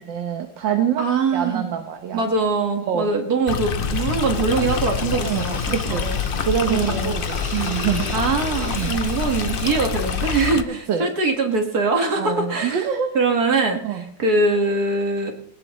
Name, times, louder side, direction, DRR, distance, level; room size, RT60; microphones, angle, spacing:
voice 1, 0.1-1.1 1.3-2.2 2.9-3.1 5.1-6.0 6.4-8.0 8.7-8.9 10.7-11.1 12.2-13.1 13.8-14.0, right 8 dB, 85° right, 5 dB, 1.9 m, -25 dB
voice 2, 1.0-1.7 2.1-6.2 6.7-7.1 8.1-12.9 13.1-15.3, right 3 dB, 55° right, 3 dB, 2.4 m, -22 dB
Stream, 3.5-10.6, left 7 dB, 80° left, 0.5 m, -27 dB
sound 1, 3.8-10.5, left 3 dB, 50° left, 5.6 m, -31 dB
20.5 x 18.5 x 3.2 m, 0.66 s
omnidirectional pair, 2.0 m